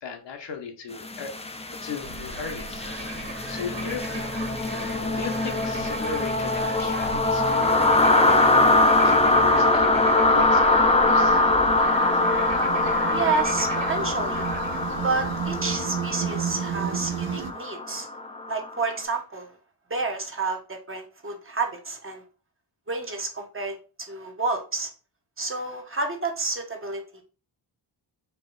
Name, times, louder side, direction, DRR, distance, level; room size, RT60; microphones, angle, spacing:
voice 1, 0.0-1.3 1.8-2.9 3.5-4.5 5.1-11.4, left 6 dB, 70° left, 5 dB, 1.0 m, -37 dB
sound 1, 1.0-18.8, left 2 dB, 15° left, 0.4 m, -23 dB
Bird / Frog, 2.0-15.8, right 3 dB, 70° right, 1.4 m, -39 dB
sound 2, 10.7-17.5, right 8 dB, 85° right, 0.7 m, -33 dB
voice 2, 13.1-18.1 18.5-19.5 19.9-22.2 22.9-24.9 25.4-27.2, right 3 dB, 30° right, 3 dB, 0.7 m, -30 dB
4.5 x 3.0 x 3.8 m, 0.36 s
wide cardioid pair, 165°, 45 cm